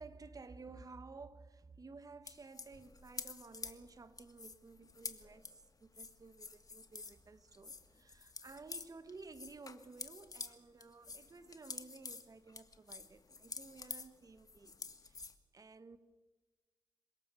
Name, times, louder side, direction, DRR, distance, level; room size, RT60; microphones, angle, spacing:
voice 1, 0.0-15.2 15.5-16.0, right 4 dB, 40° right, 1.6 m, -54 dB
sound 1, 2.3-7.2 7.5-10.5 10.8-15.3, left 4 dB, 45° left, 1.8 m, -49 dB
26.5 x 17.5 x 7.3 m
cardioid pair, 60°, 9 cm